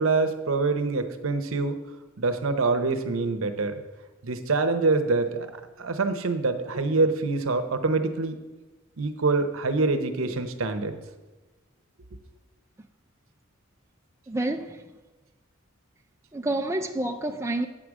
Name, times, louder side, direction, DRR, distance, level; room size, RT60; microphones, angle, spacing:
voice 1, 0.0-1.8 2.2-3.8 4.2-5.5 5.8-8.4 9.0-10.9, right 3 dB, 70° right, 0.8 m, -25 dB
voice 2, 14.3-14.8 16.3-17.7, right 1 dB, 15° right, 0.4 m, -28 dB
8.8 x 5.0 x 6.1 m
head